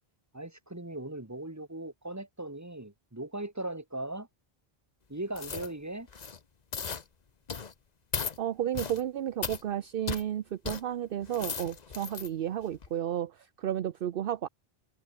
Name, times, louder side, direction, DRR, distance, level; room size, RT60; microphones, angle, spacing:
voice 1, 0.3-4.3 5.1-6.1, right 1 dB, 15° right, 2.1 m, -38 dB
sound 1, 5.3-5.7 6.1-6.4 6.7-7.0 7.5-7.7 8.1-8.4 8.7-9.0 9.4-9.6 10.1-10.2 10.6-10.8 11.2-12.3 12.7-12.9, left 5 dB, 45° left, 1.0 m, -36 dB
voice 2, 8.4-14.5, right 10 dB, 65° right, 0.8 m, -32 dB
omnidirectional pair, 1.1 m